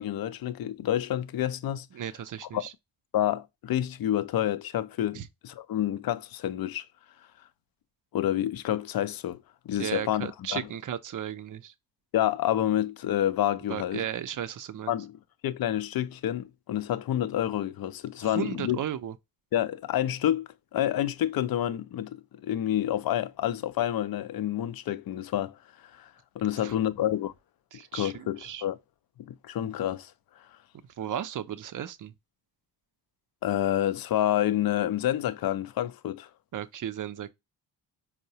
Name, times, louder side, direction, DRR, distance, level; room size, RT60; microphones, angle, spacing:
voice 1, 0.0-1.9 2.5-2.6 3.1-6.8 8.1-9.4 9.7-10.7 12.1-14.0 14.9-18.8 19.5-25.6 25.9-26.1 26.4-27.3 27.9-28.8 29.2-30.1 33.4-36.3, left 12 dB, 50° left, 0.5 m, -28 dB
voice 2, 1.9-2.7 5.1-5.3 9.8-11.7 13.7-14.9 18.2-19.1 26.6-26.8 27.7-28.6 31.0-32.1 36.5-37.3, right 10 dB, 45° right, 0.5 m, -35 dB
4.5 x 2.1 x 2.7 m
supercardioid pair, 50°, 46 cm